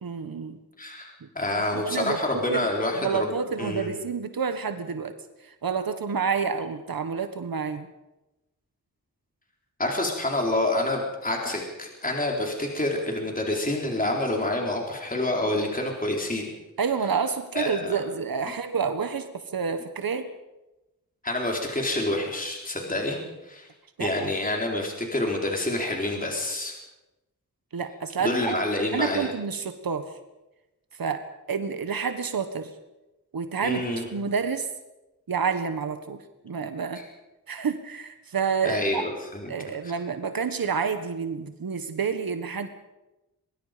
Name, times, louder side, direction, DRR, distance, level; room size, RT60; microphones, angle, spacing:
voice 1, 0.0-0.6 1.2-1.3 1.5-2.2 2.5-2.7 2.9-5.1 5.4-7.9 16.8-20.3 24.0-24.3 27.7-28.6 28.9-30.1 31.0-32.7 33.3-34.7 35.3-37.0 37.5-39.0 39.5-42.7, right 6 dB, 80° right, 9 dB, 1.5 m, -29 dB
voice 2, 0.8-3.3 3.6-3.9 9.8-16.5 17.5-18.0 21.2-23.2 23.5-23.7 24.0-26.7 28.2-29.3 33.6-34.1 37.0-37.1 38.6-39.5 39.8-39.9, left 1 dB, 25° left, 0 dB, 4.0 m, -27 dB
23.0 x 22.5 x 5.1 m, 1.0 s
wide cardioid pair, 85°, 34 cm